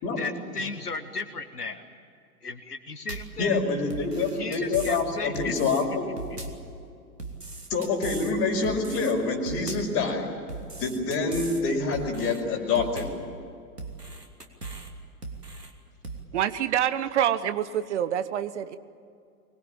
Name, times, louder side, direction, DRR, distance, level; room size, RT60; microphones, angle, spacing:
voice 1, 0.1-1.8 2.4-3.6 4.3-5.5, left 3 dB, 80° left, 8 dB, 1.7 m, -35 dB
sound 1, 3.1-3.4 3.9-5.0 5.3-5.8 6.2-6.7 7.2-8.3 8.6-9.1 9.5-10.0 10.5-11.6 11.9-12.4 12.8-13.3 13.8-14.9 15.2-15.7 16.0-16.2, right 3 dB, 85° right, 3.0 m, -38 dB
voice 2, 3.4-6.1 7.7-10.3 10.8-13.1, left 4 dB, 30° left, 3 dB, 5.4 m, -26 dB
voice 3, 16.3-18.8, right 10 dB, 50° right, 13 dB, 1.1 m, -26 dB
24.5 x 20.5 x 8.9 m, 2.4 s
figure-of-eight pair, 105°, 46 cm